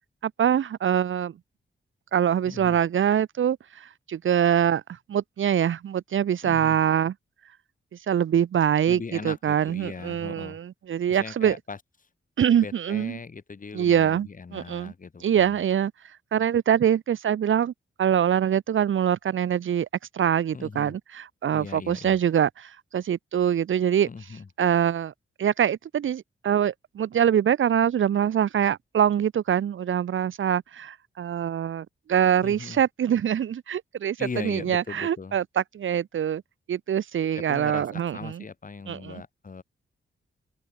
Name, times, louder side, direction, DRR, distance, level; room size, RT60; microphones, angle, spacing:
voice 1, 0.2-1.3 2.1-7.1 8.1-11.6 12.4-13.2 13.7-14.9 15.2-15.9 16.3-17.7 18.0-19.9 20.1-24.1 24.6-25.1 25.4-36.4 36.7-38.4 38.9-39.2, right 9 dB, 70° right, 0.7 m, -24 dB
voice 2, 2.4-2.8 6.4-6.8 8.9-10.6 11.1-11.8 12.6-15.6 20.5-21.0 21.5-22.2 24.1-24.5 32.4-32.8 34.2-35.4 37.3-39.6, left 4 dB, 40° left, 4.4 m, -39 dB
wide cardioid pair, 150°, 21 cm